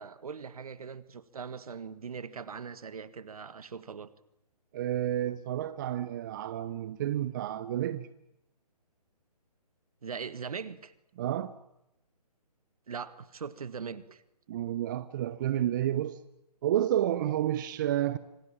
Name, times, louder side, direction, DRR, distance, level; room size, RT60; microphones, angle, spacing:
voice 1, 0.0-4.1 10.0-10.9 12.9-14.2, right 6 dB, 60° right, 1.6 m, -40 dB
voice 2, 4.7-8.1 11.2-11.5 14.5-16.2 16.6-18.2, right 12 dB, 30° right, 0.8 m, -30 dB
25.5 x 17.5 x 9.0 m
figure-of-eight pair, 145°, 21 cm